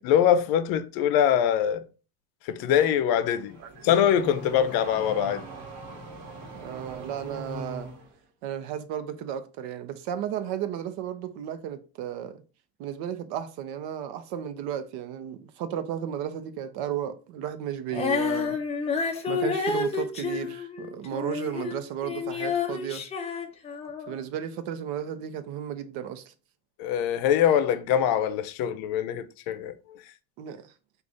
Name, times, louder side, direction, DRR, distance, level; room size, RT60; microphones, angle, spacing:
voice 1, 0.0-1.9 2.4-3.6 3.8-5.5 26.8-29.8, left 9 dB, 65° left, 0.6 m, -23 dB
Car / Accelerating revving vroom, 3.1-8.1, right 2 dB, 45° right, 1.3 m, -41 dB
voice 2, 6.5-7.9 8.4-12.4 12.8-18.6 19.3-23.0 24.1-26.3 30.4-30.7, right 9 dB, 75° right, 0.7 m, -34 dB
Female singing, 17.9-21.8 22.0-24.2, left 5 dB, 15° left, 0.5 m, -29 dB
4.9 x 2.5 x 3.9 m
cardioid pair, 155°, 39 cm